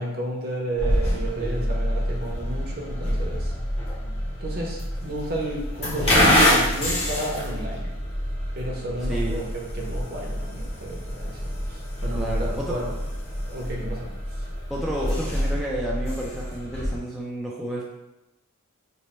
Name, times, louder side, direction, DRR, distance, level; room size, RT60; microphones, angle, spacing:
voice 1, 0.0-3.5 4.4-8.0 8.5-9.5 9.7-12.9 13.5-14.1, right 1 dB, 45° right, -1 dB, 0.7 m, -32 dB
sound 1, 0.8-17.0, equal, 25° left, 0.8 m, -26 dB
voice 2, 9.1-9.5 12.1-12.8 14.7-17.8, right 1 dB, ahead, -6 dB, 0.3 m, -31 dB
3.2 x 2.1 x 4.1 m, 0.98 s
head